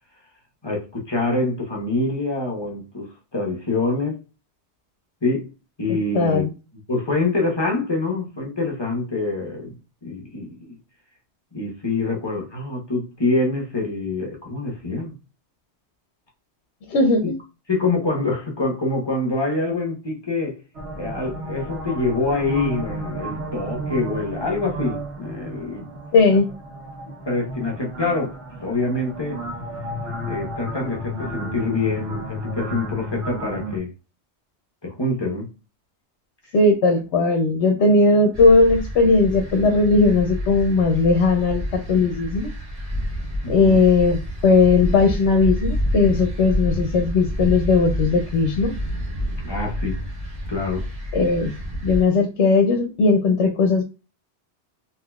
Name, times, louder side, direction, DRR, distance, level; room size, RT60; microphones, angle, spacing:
voice 1, 0.6-4.2 5.2-5.5 5.8-6.4 6.9-10.8 11.5-15.1 17.2-17.3 17.7-20.6 21.0-25.9 27.3-28.3 28.6-29.4 30.2-33.9 34.8-35.5 43.4-43.8 49.4-50.0 50.5-50.8, left 2 dB, 25° left, 1.0 m, -25 dB
voice 2, 5.9-6.5 16.9-17.4 26.1-26.4 36.5-42.5 43.5-44.2 44.4-48.7 51.1-51.5 51.8-53.8, left 3 dB, 80° left, 0.9 m, -18 dB
sound 1, 20.7-33.8, equal, 80° right, 1.2 m, -33 dB
sound 2, 38.3-52.0, equal, 35° right, 1.1 m, -28 dB
3.7 x 2.9 x 2.3 m
omnidirectional pair, 1.2 m